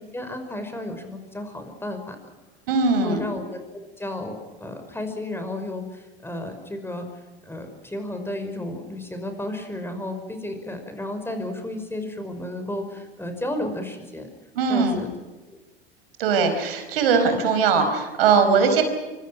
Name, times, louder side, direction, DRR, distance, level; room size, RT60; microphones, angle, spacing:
voice 1, 0.0-2.2 2.9-3.6 4.0-7.1 7.5-14.3 14.7-15.1 15.5-15.6, left 1 dB, 10° left, 6 dB, 5.5 m, -33 dB
voice 2, 2.7-3.2 14.5-15.0 16.2-18.8, right 5 dB, 70° right, 7 dB, 4.8 m, -20 dB
25.0 x 25.0 x 5.9 m, 1.2 s
figure-of-eight pair, 80°, 30 cm